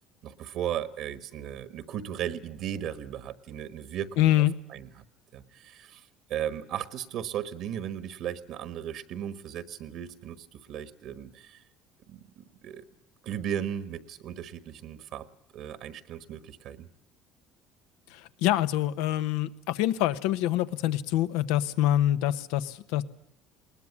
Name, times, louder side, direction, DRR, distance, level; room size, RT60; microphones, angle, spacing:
voice 1, 0.2-4.3 4.7-5.0 5.3-11.6 12.1-12.9 13.2-15.3 15.5-16.9, right 10 dB, 65° right, 13 dB, 1.3 m, -36 dB
voice 2, 4.2-4.5 18.1-23.0, left 13 dB, 90° left, 12 dB, 1.1 m, -25 dB
21.0 x 19.5 x 9.7 m, 0.70 s
cardioid pair, 120°, 0 cm